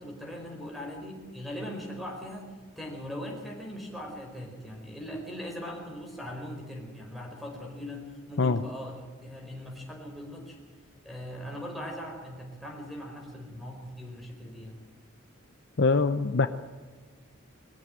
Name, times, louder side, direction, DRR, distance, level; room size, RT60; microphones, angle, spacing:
voice 1, 0.0-10.6 11.0-14.8, equal, ahead, 1 dB, 4.7 m, -40 dB
voice 2, 15.8-16.5, left 4 dB, 55° left, 10 dB, 0.7 m, -23 dB
21.0 x 14.0 x 8.9 m, 1.5 s
head